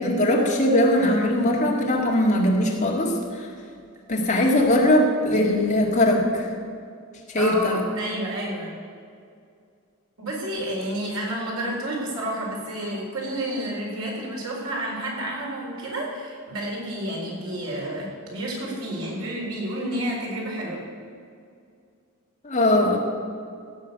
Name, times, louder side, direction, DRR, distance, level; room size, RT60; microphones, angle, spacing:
voice 1, 0.0-3.5 4.1-6.5 7.3-7.8 22.4-23.0, left 1 dB, 35° left, -1 dB, 2.1 m, -20 dB
voice 2, 7.4-8.7 10.2-20.8, right 1 dB, 85° right, -3 dB, 4.2 m, -30 dB
16.0 x 6.4 x 8.1 m, 2.3 s
head